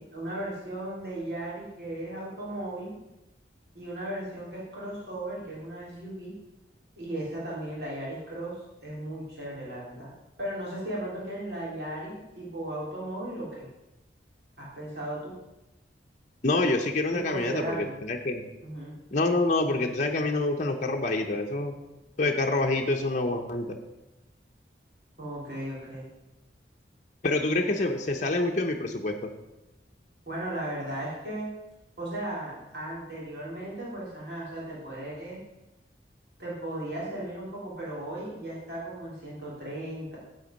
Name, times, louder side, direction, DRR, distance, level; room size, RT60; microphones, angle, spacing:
voice 1, 0.0-2.9 3.7-6.3 7.0-8.6 8.8-10.1 10.4-13.7 14.6-15.3 17.1-17.9 18.6-18.9 25.2-26.0 30.2-31.5 32.0-35.4 36.4-40.2, right 1 dB, 65° right, -6 dB, 3.5 m, -36 dB
voice 2, 16.4-18.4 19.1-21.8 22.2-23.8 27.2-29.3, left 2 dB, 45° left, 3 dB, 0.8 m, -27 dB
8.2 x 7.9 x 5.2 m, 0.98 s
head